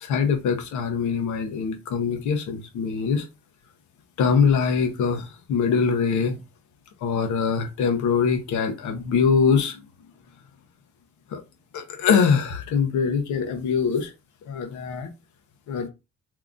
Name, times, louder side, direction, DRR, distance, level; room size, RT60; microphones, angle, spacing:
voice 1, 0.0-3.3 4.2-6.4 7.0-9.8 11.3-11.4 11.7-14.1 14.5-15.1 15.7-15.9, left 6 dB, 75° left, 0.9 m, -23 dB
3.6 x 2.9 x 2.4 m
cardioid pair, 155°, 30 cm